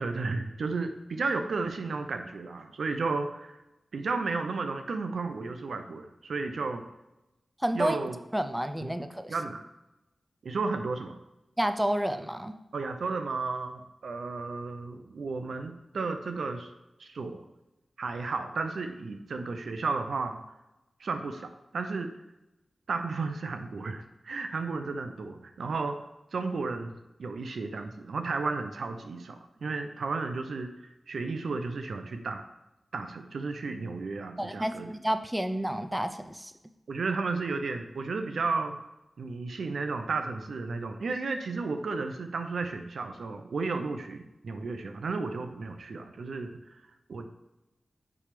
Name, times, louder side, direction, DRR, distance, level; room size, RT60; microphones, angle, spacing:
voice 1, 0.0-3.6 3.9-6.8 7.7-8.2 9.3-9.6 10.4-11.2 12.7-16.7 17.0-17.4 18.0-20.4 21.0-22.1 22.9-26.0 26.3-32.4 32.9-34.9 36.9-38.8 39.2-46.8 47.1-47.3, right 4 dB, 80° right, 7 dB, 0.6 m, -33 dB
voice 2, 7.6-8.0 8.3-9.3 11.6-12.6 34.4-36.5, equal, 10° right, 9 dB, 0.6 m, -30 dB
8.5 x 3.4 x 5.0 m, 0.95 s
cardioid pair, 50°, 0 cm